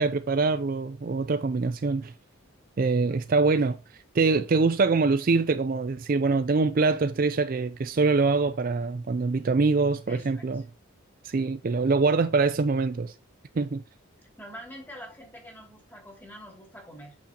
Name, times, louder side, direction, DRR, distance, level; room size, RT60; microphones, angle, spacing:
voice 1, 0.0-2.1 2.8-3.8 4.1-10.6 11.2-13.1 13.5-13.8, right 4 dB, 45° right, 0.4 m, -24 dB
voice 2, 10.1-10.6 14.4-17.2, equal, 10° left, 2.5 m, -45 dB
8.4 x 6.1 x 2.9 m
head